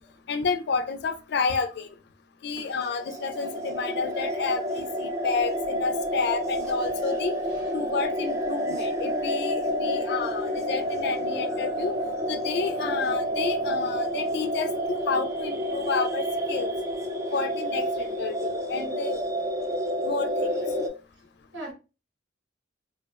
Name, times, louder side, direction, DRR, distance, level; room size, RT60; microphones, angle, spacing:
voice 1, 0.3-1.9 2.4-7.3 7.7-11.9 12.3-16.7 17.3-19.2 20.0-20.5, left 4 dB, 60° left, 0.3 m, -30 dB
sound 1, 2.7-20.9, equal, 15° right, 0.3 m, -29 dB
voice 2, 7.4-7.7 20.0-20.5 20.8-21.0 21.5-21.7, right 1 dB, 75° right, 1.2 m, -44 dB
2.7 x 2.1 x 2.2 m
head